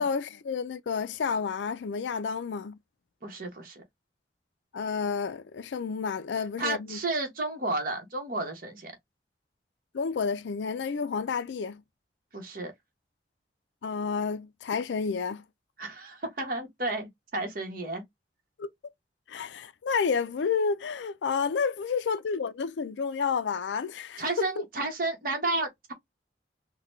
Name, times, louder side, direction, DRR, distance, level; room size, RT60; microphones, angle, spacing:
voice 1, 0.0-2.8 4.7-7.0 9.9-11.8 13.8-15.4 18.6-18.7 19.3-24.6, left 5 dB, 90° left, 0.4 m, -30 dB
voice 2, 3.2-3.8 6.6-8.9 12.3-12.7 15.8-18.0 24.2-25.9, right 2 dB, 50° right, 1.2 m, -32 dB
3.8 x 2.2 x 3.1 m
head